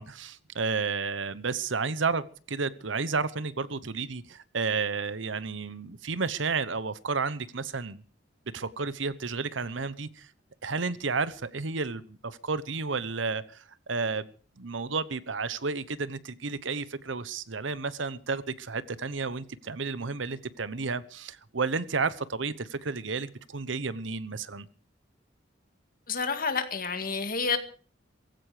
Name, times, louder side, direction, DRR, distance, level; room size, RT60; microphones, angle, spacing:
voice 1, 0.0-8.0 8.5-10.3 10.6-14.3 14.6-24.7, right 4 dB, 75° right, 16 dB, 1.0 m, -32 dB
voice 2, 26.1-27.6, left 5 dB, 50° left, 8 dB, 2.1 m, -29 dB
18.0 x 15.5 x 5.0 m, 0.42 s
head